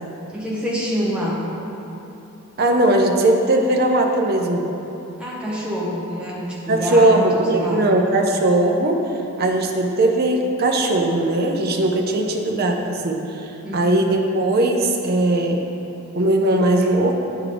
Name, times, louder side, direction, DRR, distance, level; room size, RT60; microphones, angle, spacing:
voice 1, 0.3-1.4 5.2-7.9 13.6-14.0, equal, 5° right, -6 dB, 1.0 m, -26 dB
voice 2, 2.6-4.6 6.7-9.1 9.4-15.7 16.1-17.1, right 1 dB, 45° right, 2 dB, 0.5 m, -19 dB
9.6 x 3.7 x 3.4 m, 2.9 s
head